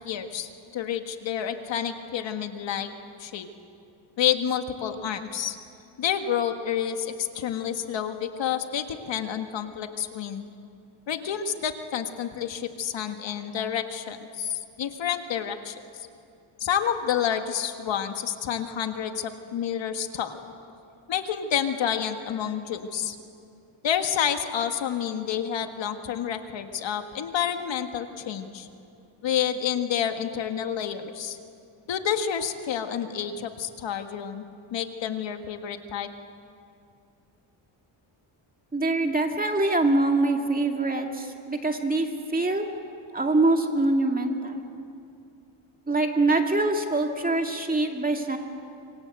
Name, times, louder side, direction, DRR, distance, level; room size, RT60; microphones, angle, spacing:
voice 1, 0.0-2.9 3.2-3.5 4.2-5.6 6.0-10.5 11.1-16.1 16.6-20.4 21.1-23.2 23.8-28.7 29.2-31.4 31.9-34.4 34.7-36.1, left 9 dB, 60° left, 6 dB, 1.8 m, -29 dB
voice 2, 38.7-42.7 43.1-44.6 45.9-48.4, right 2 dB, 15° right, 3 dB, 2.2 m, -24 dB
26.0 x 25.0 x 8.0 m, 2.6 s
cardioid pair, 135°, 50 cm